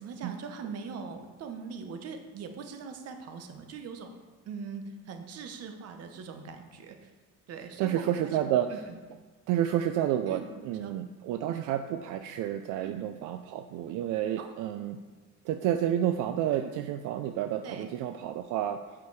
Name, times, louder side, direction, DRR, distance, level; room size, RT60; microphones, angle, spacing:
voice 1, 0.0-4.1 4.4-7.1 7.5-8.4 8.7-9.0 10.3-11.0 12.8-13.0 14.4-14.5 16.5-16.7 17.6-17.9, right 5 dB, 55° right, 6 dB, 0.9 m, -41 dB
voice 2, 7.8-8.7 9.5-15.0 15.4-18.8, right 11 dB, 80° right, 8 dB, 0.5 m, -30 dB
8.2 x 5.1 x 4.6 m, 1.3 s
cardioid pair, 150°, 30 cm